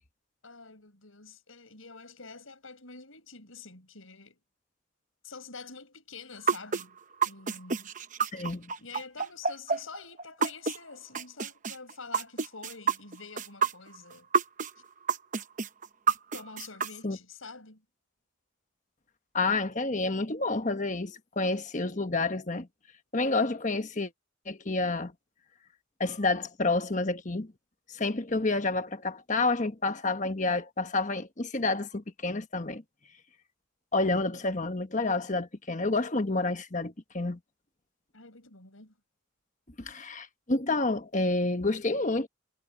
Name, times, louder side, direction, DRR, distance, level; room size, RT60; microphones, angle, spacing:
voice 1, 0.4-4.4 5.2-7.0 7.3-7.9 8.8-14.3 16.3-17.8 38.1-38.9, left 4 dB, 85° left, 5.6 m, -47 dB
sound 1, 6.5-10.8 11.1-14.7 15.1-16.9, right 5 dB, 40° right, 0.8 m, -28 dB
voice 2, 8.3-8.7 17.0-17.2 19.3-22.7 23.1-24.1 24.5-25.1 26.0-27.5 27.9-32.8 33.9-37.4 39.8-42.3, left 3 dB, 35° left, 1.3 m, -29 dB
head